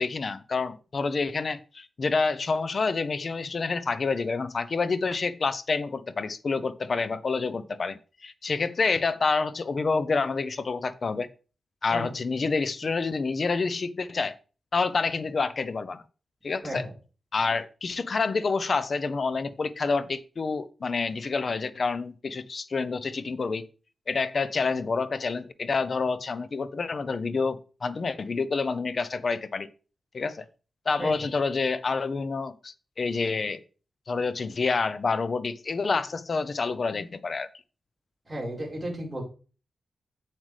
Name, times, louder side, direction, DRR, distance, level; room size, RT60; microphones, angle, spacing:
voice 1, 0.0-11.3 11.8-14.4 14.7-16.0 16.4-16.8 17.3-23.7 24.1-29.7 30.1-30.5 30.9-33.6 34.1-37.5, left 4 dB, 45° left, 13 dB, 0.6 m, -28 dB
voice 2, 38.3-39.2, right 1 dB, 20° right, -3 dB, 4.4 m, -34 dB
7.8 x 7.4 x 3.3 m, 0.34 s
wide cardioid pair, 150°, 0 cm